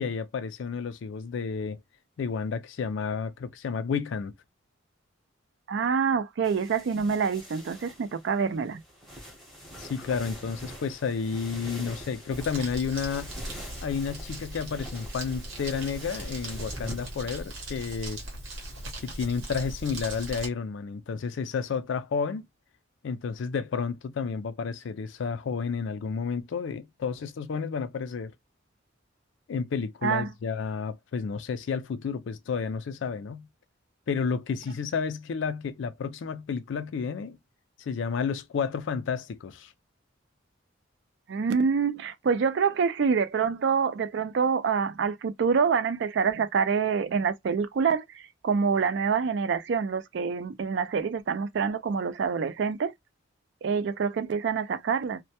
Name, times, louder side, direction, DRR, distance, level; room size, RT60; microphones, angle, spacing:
voice 1, 0.0-1.8 2.2-4.3 9.8-13.3 13.8-18.2 19.0-22.4 23.0-28.3 29.5-33.5 34.1-37.4 37.9-39.7, left 5 dB, 70° left, 0.4 m, -31 dB
voice 2, 5.7-8.8 30.0-30.3 41.3-52.9 53.6-55.2, right 6 dB, 60° right, 0.3 m, -26 dB
sound 1, 6.4-20.5, equal, ahead, 0.7 m, -46 dB
Crumpling crinkling, 12.3-20.5, right 1 dB, 80° right, 0.9 m, -39 dB
2.1 x 2.1 x 2.7 m
head